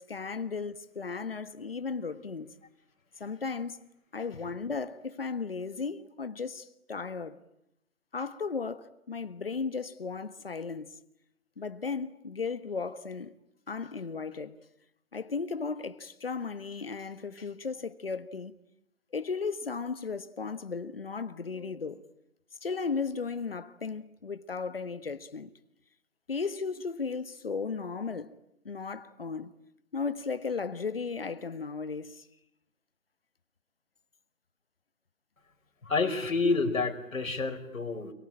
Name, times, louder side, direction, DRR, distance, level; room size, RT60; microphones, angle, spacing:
voice 1, 0.0-2.5 3.2-3.9 4.1-7.4 8.1-11.0 11.6-13.4 13.7-14.6 15.1-18.5 19.1-22.0 22.6-25.5 26.3-28.4 28.6-29.5 29.9-32.3, left 5 dB, 45° left, 1.4 m, -35 dB
voice 2, 35.8-38.1, left 3 dB, 70° left, 5.1 m, -29 dB
29.0 x 23.0 x 8.8 m
hypercardioid pair, 175°, 42 cm